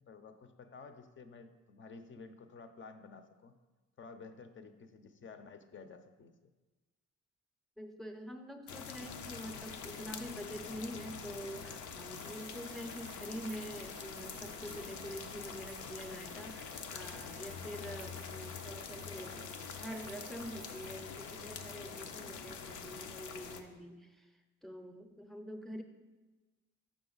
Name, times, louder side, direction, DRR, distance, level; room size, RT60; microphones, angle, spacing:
voice 1, 0.0-3.6 4.0-6.5, left 4 dB, 40° left, 8 dB, 0.6 m, -52 dB
voice 2, 7.8-24.3 24.6-25.8, equal, ahead, 5 dB, 0.7 m, -46 dB
sound 1, 8.7-23.6, left 6 dB, 80° left, 0.6 m, -45 dB
sound 2, 12.1-21.0, right 9 dB, 50° right, 0.5 m, -57 dB
6.5 x 6.0 x 3.9 m, 1.2 s
cardioid pair, 90°, 30 cm